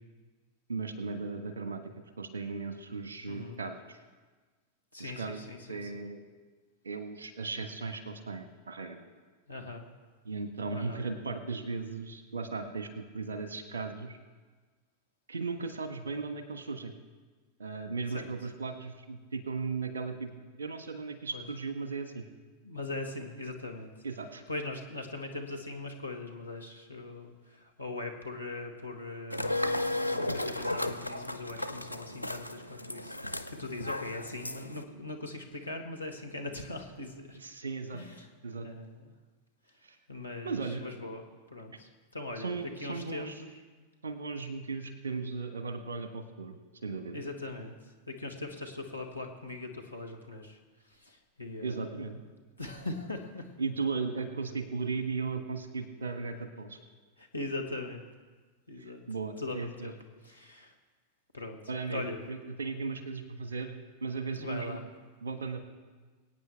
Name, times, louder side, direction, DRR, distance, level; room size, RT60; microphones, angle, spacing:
voice 1, 0.7-1.8 2.2-4.0 5.0-6.2 6.8-9.0 10.2-14.2 15.3-16.9 17.6-20.3 20.6-22.2 24.0-24.4 37.4-38.0 38.4-38.7 39.8-40.0 40.4-40.8 42.4-43.4 44.0-47.2 51.6-52.2 53.6-56.8 58.8-59.9 61.7-62.0 62.3-63.7 64.0-64.8 65.2-65.6, right 4 dB, 70° right, 8 dB, 1.3 m, -36 dB
voice 2, 3.3-3.6 4.9-6.0 9.5-9.8 10.7-11.0 18.1-18.3 21.3-21.5 22.6-23.9 24.5-37.4 37.9-38.3 38.6-39.1 39.7-39.8 40.1-43.6 47.1-52.3 52.6-53.5 57.2-58.0 58.7-59.0 59.4-60.0 60.2-60.7 61.3-61.6 61.9-62.2 64.4-64.8, left 2 dB, 85° left, 1 dB, 1.4 m, -41 dB
sound 1, 29.3-34.8, left 1 dB, 90° right, 0.5 m, -34 dB
23.5 x 8.9 x 3.5 m, 1.4 s
figure-of-eight pair, 90°, 0 cm